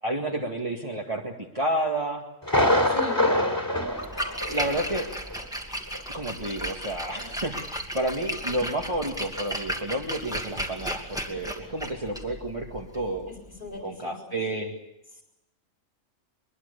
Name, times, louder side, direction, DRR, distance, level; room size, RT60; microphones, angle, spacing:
voice 1, 0.0-2.2 3.2-3.6 4.5-5.1 6.1-13.3 13.8-14.7, right 1 dB, 25° right, -2 dB, 2.1 m, -30 dB
Thunder, 2.4-5.0 5.3-5.4 5.9-6.0, left 1 dB, 15° left, 3.5 m, -24 dB
voice 2, 2.9-3.3 13.3-14.4, left 3 dB, 35° left, 2 dB, 4.5 m, -38 dB
Splash splatter, 3.9-13.8, equal, 5° right, 2.5 m, -35 dB
23.0 x 22.5 x 6.9 m, 0.87 s
omnidirectional pair, 1.4 m